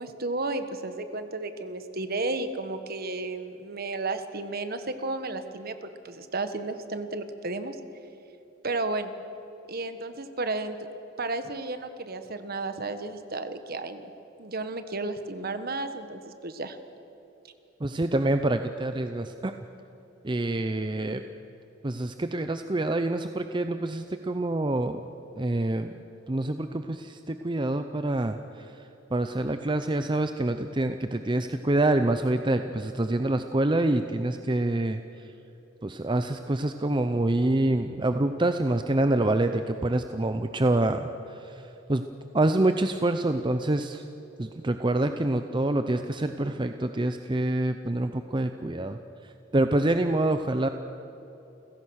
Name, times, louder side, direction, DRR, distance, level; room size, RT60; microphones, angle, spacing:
voice 1, 0.0-7.8 8.6-9.1 9.7-10.8 11.2-14.1 14.4-16.8, right 2 dB, 50° right, 9 dB, 1.4 m, -33 dB
voice 2, 17.8-19.5 20.2-21.2 21.8-25.0 25.4-25.9 26.3-28.7 29.1-35.0 35.8-41.6 41.9-42.0 42.3-44.0 44.4-49.0 49.5-50.7, right 2 dB, 25° right, 8 dB, 0.6 m, -26 dB
29.5 x 16.5 x 6.4 m, 3.0 s
head